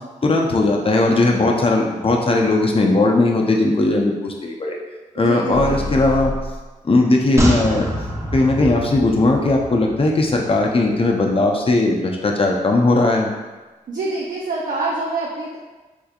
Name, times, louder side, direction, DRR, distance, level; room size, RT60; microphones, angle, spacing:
voice 1, 0.2-4.8 5.1-6.3 6.8-7.9 8.3-13.3, left 2 dB, 35° left, 0 dB, 0.6 m, -18 dB
voice 2, 5.2-6.0 13.9-15.6, right 2 dB, 60° right, -4 dB, 0.5 m, -26 dB
sound 1, 5.5-6.7, left 2 dB, 90° left, 0.5 m, -28 dB
sound 2, 7.4-10.8 11.1-11.2, equal, 20° right, 0.8 m, -26 dB
3.4 x 3.4 x 2.3 m, 1.2 s
supercardioid pair, 45°, 16 cm